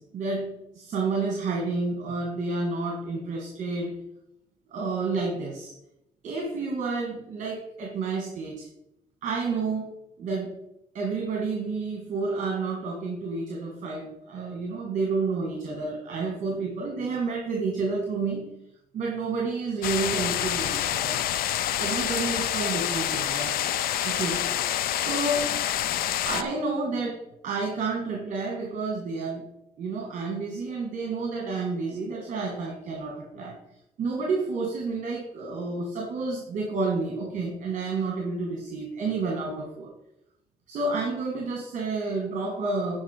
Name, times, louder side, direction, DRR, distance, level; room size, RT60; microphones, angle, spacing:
voice 1, 0.0-4.0 4.7-5.7 6.2-8.7 9.2-10.6 10.9-18.5 18.9-21.2 21.8-23.6 24.0-24.5 24.9-25.5 26.2-29.5 29.8-33.6 34.0-39.9 40.7-43.0, right 3 dB, 55° right, 0 dB, 1.8 m, -30 dB
sound 1, 19.8-26.4, left 11 dB, 85° left, 0.5 m, -27 dB
10.5 x 5.3 x 4.5 m, 0.83 s
cardioid pair, 160°, 15 cm